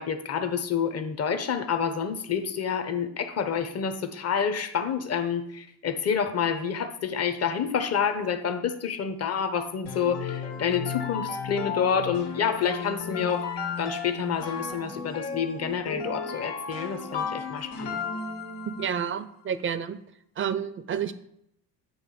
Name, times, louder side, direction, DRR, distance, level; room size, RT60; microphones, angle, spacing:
voice 1, 0.0-13.5 13.8-18.0, left 7 dB, 35° left, 8 dB, 0.9 m, -28 dB
sound 1, 9.9-19.0, left 5 dB, 85° left, 2.0 m, -34 dB
voice 2, 18.8-20.0 20.4-21.1, right 8 dB, 30° right, 12 dB, 0.5 m, -29 dB
8.9 x 3.1 x 6.4 m, 0.75 s
cardioid pair, 115°, 46 cm